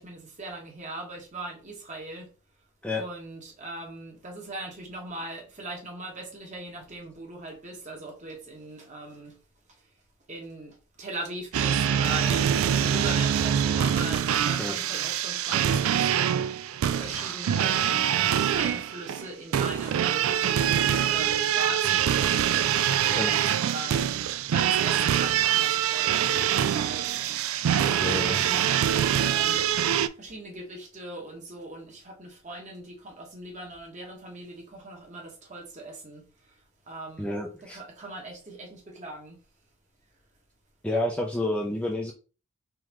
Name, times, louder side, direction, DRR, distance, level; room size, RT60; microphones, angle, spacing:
voice 1, 0.0-2.3 2.9-9.4 9.7-9.8 10.3-16.4 16.9-17.9 18.2-22.4 22.7-24.1 24.5-29.7 30.2-36.6 36.9-37.3 37.7-39.4, right 2 dB, 35° right, 1.1 m, -40 dB
sound 1, 11.5-30.1, right 9 dB, 65° right, 0.3 m, -24 dB
voice 2, 28.0-28.4 37.2-37.8 40.8-42.1, left 1 dB, 5° left, 0.4 m, -29 dB
3.8 x 3.1 x 3.0 m
head